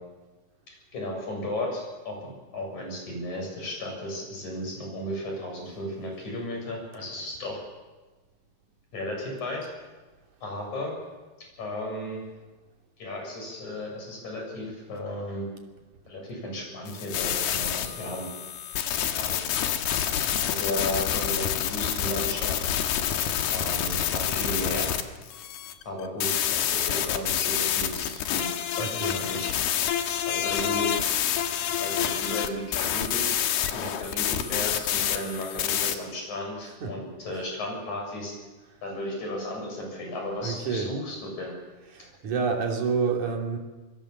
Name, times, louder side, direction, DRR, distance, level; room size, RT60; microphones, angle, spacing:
voice 1, 0.9-7.6 8.9-9.7 10.4-10.9 11.6-12.2 13.0-15.5 16.1-18.3 19.1-19.5 20.2-22.7 23.5-24.9 25.9-29.5 30.3-30.9 31.8-33.4 33.7-38.3 38.8-41.5, left 1 dB, 50° left, 0 dB, 8.6 m, -34 dB
sound 1, 16.9-36.0, left 10 dB, 80° left, 3.3 m, -28 dB
voice 2, 28.7-29.3 36.8-37.0 40.4-40.9 41.9-43.6, right 5 dB, 55° right, 2 dB, 4.1 m, -29 dB
26.5 x 23.0 x 7.3 m, 1.3 s
omnidirectional pair, 4.5 m